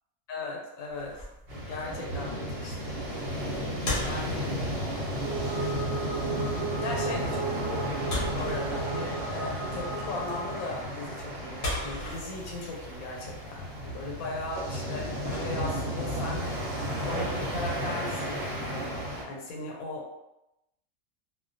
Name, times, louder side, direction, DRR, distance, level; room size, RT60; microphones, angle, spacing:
voice 1, 0.3-1.2 1.5-3.0 4.0-4.6 6.8-7.8 8.4-16.6 17.0-20.1, left 2 dB, 85° left, -1 dB, 1.0 m, -38 dB
sound 1, 0.9-16.0, left 1 dB, 50° left, 0.8 m, -40 dB
sound 2, 1.5-19.2, equal, 50° right, 0.8 m, -33 dB
sound 3, 5.1-10.8, right 6 dB, 80° right, 1.0 m, -36 dB
2.3 x 2.1 x 2.5 m, 0.90 s
omnidirectional pair, 1.5 m